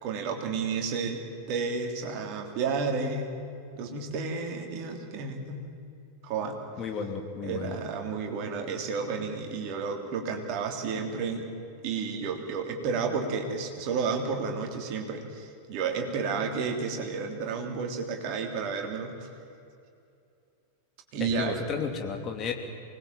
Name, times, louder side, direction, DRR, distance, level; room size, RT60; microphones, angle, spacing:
voice 1, 0.0-3.3 3.7-5.7 6.2-6.6 7.4-11.4 11.8-19.3 21.1-21.6, right 5 dB, 45° right, 3 dB, 3.3 m, -31 dB
voice 2, 6.8-7.8 21.2-22.7, left 5 dB, 30° left, 4 dB, 2.9 m, -33 dB
24.5 x 20.0 x 7.5 m, 2.6 s
figure-of-eight pair, 90°, 0 cm